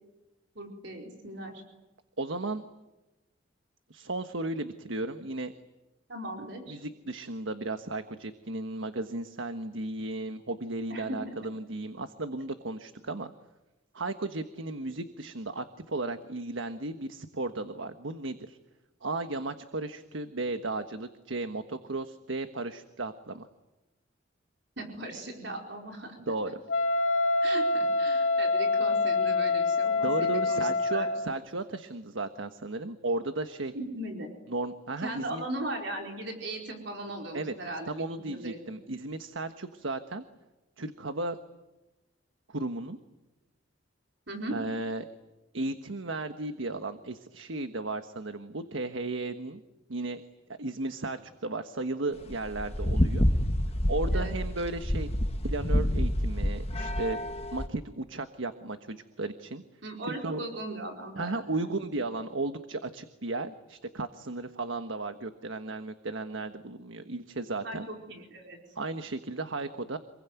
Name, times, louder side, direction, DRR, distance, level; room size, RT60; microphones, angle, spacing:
voice 1, 0.5-1.6 6.1-6.8 10.9-11.4 24.8-26.1 27.4-31.2 33.7-34.3 35.0-38.7 44.3-44.6 54.1-54.4 59.8-61.8 67.6-68.6, right 1 dB, 65° right, 2 dB, 4.7 m, -38 dB
voice 2, 2.2-2.7 3.9-5.5 6.7-13.3 13.9-18.6 19.0-23.5 26.3-26.6 30.0-33.7 34.5-35.4 37.3-37.5 37.8-40.2 40.8-41.4 42.5-43.0 44.5-45.0 45.5-49.6 49.9-50.2 50.6-53.3 53.9-55.1 55.4-57.2 57.5-59.6 60.1-60.4 61.2-67.9 68.8-70.0, right 2 dB, 85° right, 9 dB, 1.4 m, -35 dB
Wind instrument woodwind instrument, 26.7-31.4, left 3 dB, 85° left, 1.7 m, -26 dB
sound 1, 52.2-57.7, equal, 30° left, 1.5 m, -28 dB
27.5 x 22.0 x 9.4 m, 1.0 s
head